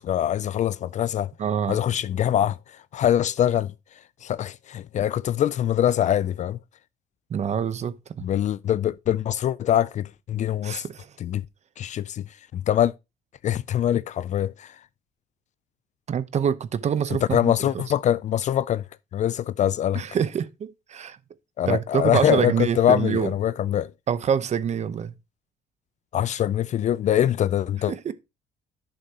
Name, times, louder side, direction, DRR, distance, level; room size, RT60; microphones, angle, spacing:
voice 1, 0.0-1.3 1.7-2.6 2.9-3.7 4.2-6.6 8.2-10.8 11.2-11.4 11.8-12.3 12.5-12.9 13.4-14.8 17.3-18.8 19.1-20.0 21.6-23.9 26.1-27.9, left 10 dB, 45° left, 0.4 m, -23 dB
voice 2, 1.4-1.8 7.3-8.3 10.6-11.1 16.1-17.8 19.9-21.2 21.7-23.3 24.1-25.1 27.9-28.1, right 7 dB, 40° right, 0.9 m, -26 dB
11.0 x 6.6 x 2.9 m
cardioid pair, 110°, 17 cm